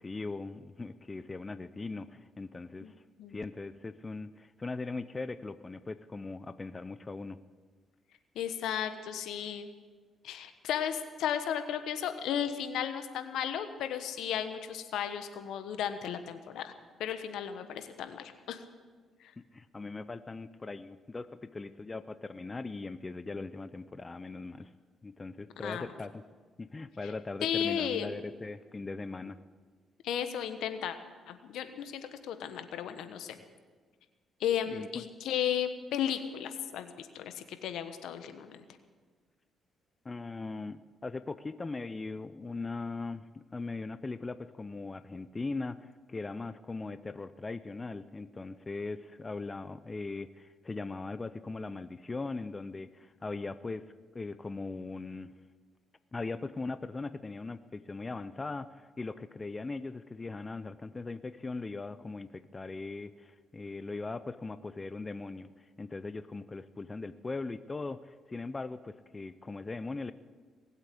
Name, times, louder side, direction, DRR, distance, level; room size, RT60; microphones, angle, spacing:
voice 1, 0.0-2.9 3.3-7.4 19.5-24.7 25.0-26.2 26.6-29.4 34.7-35.0 40.0-53.8 54.1-55.3 56.1-70.1, left 3 dB, 25° left, 13 dB, 0.5 m, -40 dB
voice 2, 8.3-9.7 10.2-16.7 17.0-18.6 19.2-19.3 25.6-25.9 27.4-28.1 30.0-31.0 31.3-33.4 34.4-38.6, left 9 dB, 80° left, 9 dB, 1.2 m, -34 dB
19.5 x 8.2 x 8.4 m, 1.5 s
cardioid pair, 90°, 0 cm